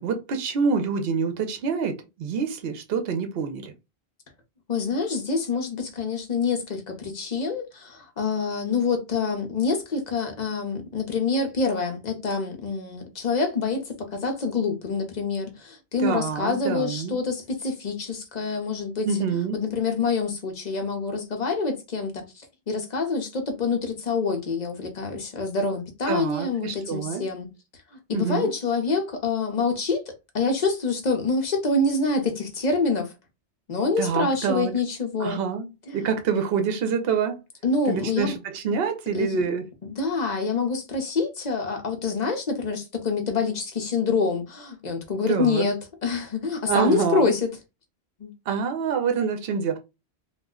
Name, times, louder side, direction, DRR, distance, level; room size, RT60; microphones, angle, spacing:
voice 1, 0.0-3.7 16.0-17.2 19.0-19.6 26.1-27.2 28.1-28.5 34.0-34.7 35.2-37.4 37.9-39.7 45.3-45.6 46.7-47.3 48.5-49.8, right 6 dB, 65° right, 0.8 m, -26 dB
voice 2, 4.7-19.1 19.5-27.5 28.1-30.0 30.3-33.1 33.7-35.4 35.9-36.0 37.6-38.3 39.1-39.4 39.8-47.4 48.2-48.3, left 4 dB, 45° left, 0.8 m, -26 dB
2.4 x 2.1 x 3.5 m
omnidirectional pair, 1.1 m